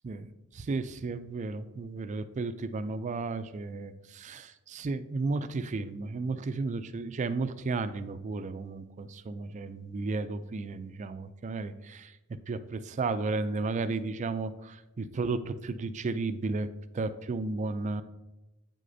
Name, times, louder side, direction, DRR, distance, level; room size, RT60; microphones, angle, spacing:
voice 1, 0.0-12.1 12.5-16.7 16.9-18.0, right 3 dB, 35° right, 12 dB, 0.3 m, -33 dB
8.4 x 6.4 x 2.6 m, 1.0 s
head